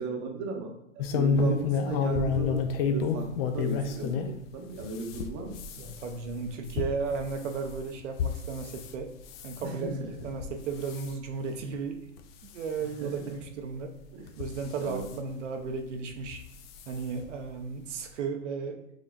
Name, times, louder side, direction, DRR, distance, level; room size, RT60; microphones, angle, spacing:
voice 1, 0.0-2.6 2.9-3.3 3.5-5.6 9.6-9.7 12.8-13.1 14.1-14.3 14.8-15.0, right 3 dB, 35° right, 2 dB, 0.8 m, -36 dB
sound 1, 1.0-4.3 4.8-8.9 9.3-9.7 10.2-10.5 10.8-11.1 11.7-11.8 12.2-12.3 13.4-13.5 14.3-15.1 16.2-16.4 16.8-16.9 17.2-17.3, left 5 dB, 50° left, 0.6 m, -29 dB
voice 2, 5.8-9.1 9.4-12.0 12.5-13.9 14.4-16.4 16.9-18.8, right 5 dB, 70° right, 3 dB, 0.8 m, -34 dB
6.1 x 2.7 x 2.5 m, 0.77 s
hypercardioid pair, 115°, 38 cm